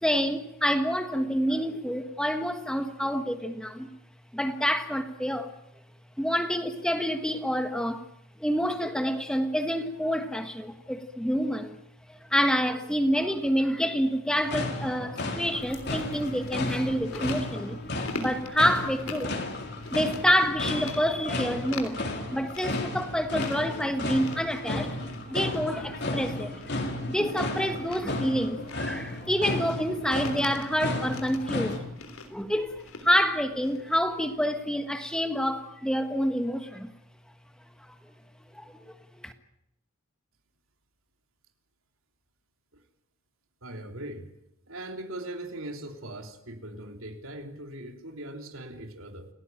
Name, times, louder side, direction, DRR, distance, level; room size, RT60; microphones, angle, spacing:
voice 1, 0.0-3.9 4.3-5.5 6.2-8.0 8.4-11.8 12.1-17.8 18.2-19.4 19.9-24.9 25.3-26.8 27.1-31.8 32.3-36.9 37.9-38.0 38.5-38.7 39.2-39.3, equal, 5° left, 7 dB, 1.5 m, -28 dB
sound 1, 14.3-31.8, left 1 dB, 50° left, 4.0 m, -33 dB
Chewing mastication, 15.6-34.5, left 3 dB, 75° left, 3.5 m, -45 dB
voice 2, 43.6-44.3 44.7-49.3, right 1 dB, 70° right, 5 dB, 3.2 m, -40 dB
29.0 x 18.0 x 9.1 m, 0.83 s
head